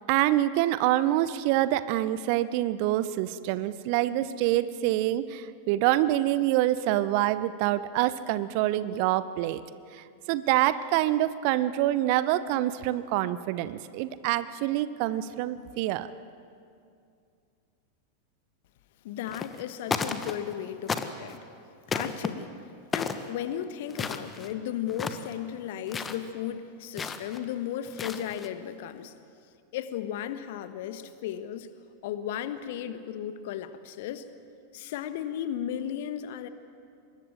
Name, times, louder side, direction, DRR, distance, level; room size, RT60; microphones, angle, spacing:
voice 1, 0.1-9.6 9.9-16.1, right 14 dB, 45° right, 15 dB, 0.9 m, -26 dB
voice 2, 19.0-21.4 21.9-22.5 22.9-29.1 29.7-31.7 32.0-34.3 34.7-36.5, left 10 dB, 50° left, 11 dB, 1.4 m, -35 dB
sound 1, 19.3-19.6 19.9-20.5 20.9-21.4 21.9-22.3 22.9-23.3 23.9-24.5 24.9-25.3 25.9-26.2 27.0-27.4 27.8-28.5, left 5 dB, 20° left, 1.3 m, -33 dB
24.5 x 21.0 x 7.7 m, 2.4 s
figure-of-eight pair, 90°, 0 cm